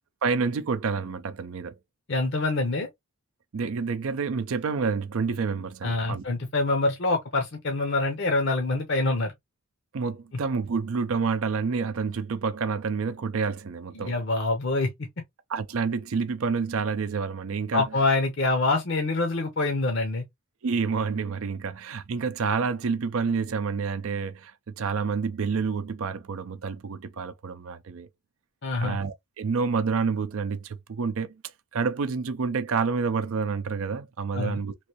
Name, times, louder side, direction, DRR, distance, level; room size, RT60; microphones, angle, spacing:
voice 1, 0.2-1.8 3.5-6.2 9.9-14.1 15.5-17.8 20.6-28.1 28.8-31.4 31.7-34.7, right 5 dB, 70° right, 0.5 m, -28 dB
voice 2, 2.1-2.9 5.8-9.3 13.9-15.1 17.7-20.2 28.6-29.0 34.3-34.6, left 2 dB, 55° left, 0.7 m, -25 dB
3.1 x 2.6 x 3.0 m
head